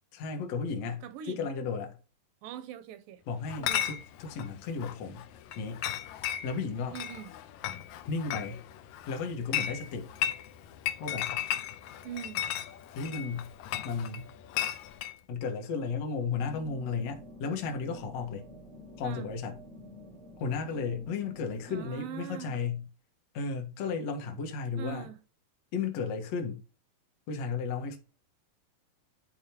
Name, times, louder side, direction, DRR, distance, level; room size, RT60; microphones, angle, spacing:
voice 1, 0.1-2.0 3.3-5.2 5.6-5.8 6.4-7.0 8.1-8.6 9.1-10.1 11.0-11.3 12.9-13.5 13.8-14.3 15.3-18.5 19.0-19.6 20.4-22.8 23.3-25.1 25.7-26.6 27.3-28.0, left 5 dB, 55° left, 2.1 m, -34 dB
voice 2, 1.0-1.5 2.4-3.2 3.6-3.9 6.9-7.3 12.0-12.4 19.0-19.3 21.7-22.6 24.8-25.2, right 10 dB, 80° right, 2.3 m, -42 dB
Chatter / Chink clink, 3.5-15.2, left 11 dB, 75° left, 1.7 m, -36 dB
sound 1, 16.3-21.9, equal, 10° left, 0.3 m, -49 dB
10.5 x 4.4 x 2.9 m
omnidirectional pair, 4.0 m